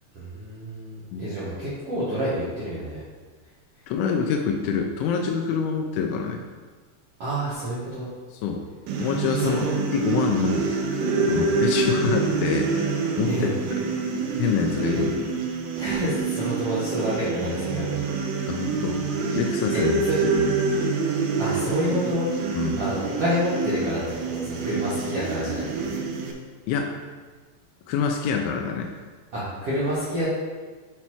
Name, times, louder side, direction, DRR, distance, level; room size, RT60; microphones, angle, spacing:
voice 1, 0.1-3.0 7.2-8.1 9.3-9.7 11.2-11.5 13.3-13.5 14.9-15.0 15.8-18.5 19.7-20.2 21.4-22.3 22.8-25.8 29.3-30.3, equal, 75° right, -11 dB, 1.4 m, -29 dB
voice 2, 3.9-6.4 8.4-8.6 9.0-9.7 9.9-10.7 11.3-12.9 13.2-13.5 14.4-15.1 18.5-19.0 19.3-20.5 22.6-22.8 26.7-26.9 27.9-28.9, left 6 dB, 85° left, 2 dB, 2.8 m, -26 dB
sound 1, 8.9-26.3, right 4 dB, 90° right, 3.4 m, -26 dB
8.3 x 4.2 x 4.5 m, 1.4 s
omnidirectional pair, 5.5 m